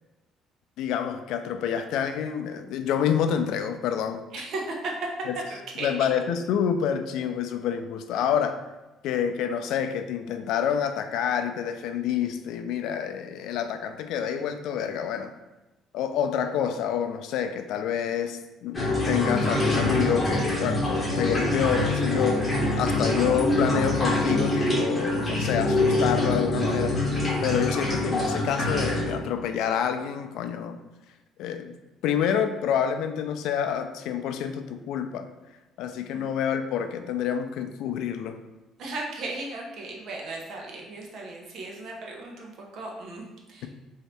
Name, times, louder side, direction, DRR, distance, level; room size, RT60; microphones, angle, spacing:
voice 1, 0.8-4.2 5.3-5.4 5.8-8.6 9.0-15.3 15.9-27.1 27.4-30.8 31.4-31.8 32.0-35.3 35.8-38.4, left 8 dB, 75° left, 7 dB, 0.3 m, -28 dB
voice 2, 4.3-4.9 5.8-5.9 36.1-36.3 38.8-43.7, right 2 dB, 60° right, 0 dB, 0.8 m, -36 dB
sound 1, 18.7-29.2, left 2 dB, 10° left, 1.3 m, -25 dB
3.9 x 2.7 x 3.3 m, 1.1 s
cardioid pair, 135°, 0 cm